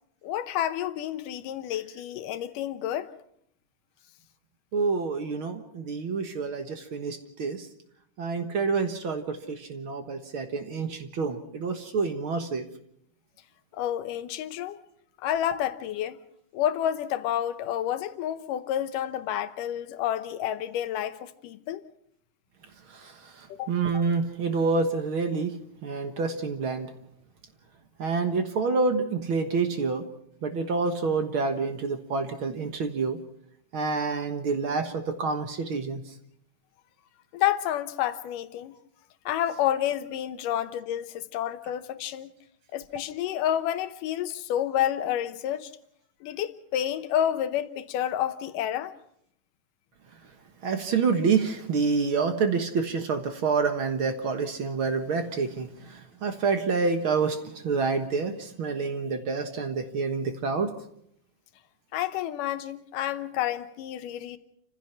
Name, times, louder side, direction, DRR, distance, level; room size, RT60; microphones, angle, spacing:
voice 1, 0.2-3.1 13.7-14.8 15.2-16.2 16.5-21.8 23.5-23.7 37.3-38.8 39.3-42.3 42.7-45.7 46.2-48.9 61.9-64.4, left 11 dB, 85° left, 2.6 m, -29 dB
voice 2, 4.7-7.7 8.2-12.7 22.9-25.5 25.8-26.9 28.0-30.0 30.4-33.2 33.7-36.0 50.6-60.7, right 4 dB, 50° right, 1.7 m, -28 dB
29.0 x 15.5 x 5.8 m
omnidirectional pair, 3.7 m